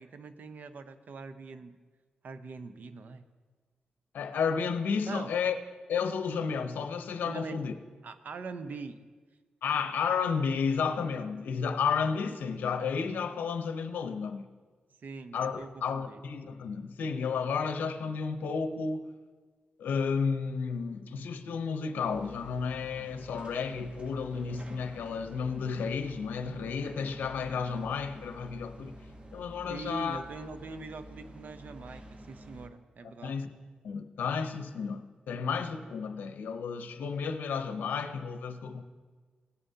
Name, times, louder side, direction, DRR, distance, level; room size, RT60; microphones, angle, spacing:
voice 1, 0.0-1.8 2.2-3.2 5.0-5.3 7.2-7.6 8.0-9.0 15.0-16.2 29.7-33.4, right 3 dB, 65° right, 0.7 m, -42 dB
voice 2, 4.1-5.6 5.9-7.7 9.6-14.5 15.3-19.1 19.8-28.9 29.3-30.2 33.2-33.5 33.8-38.8, left 6 dB, 85° left, 0.7 m, -32 dB
sound 1, 22.0-32.7, right 1 dB, 35° right, 1.2 m, -50 dB
17.0 x 9.0 x 2.8 m
cardioid pair, 70°, 3 cm